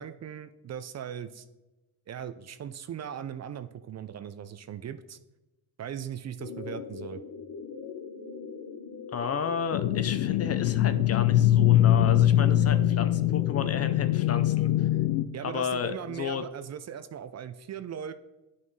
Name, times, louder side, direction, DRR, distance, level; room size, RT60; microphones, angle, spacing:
voice 1, 0.0-1.5 2.1-5.2 5.8-7.2 15.3-18.1, right 9 dB, 40° right, 11 dB, 0.5 m, -39 dB
sound 1, 6.4-15.1, left 6 dB, 55° left, 1.2 m, -41 dB
voice 2, 9.1-14.9 15.4-16.5, left 7 dB, 35° left, 10 dB, 0.6 m, -32 dB
sound 2, 9.7-15.3, left 12 dB, 85° left, 0.5 m, -23 dB
10.5 x 5.5 x 3.2 m, 1.0 s
cardioid pair, 90°, 41 cm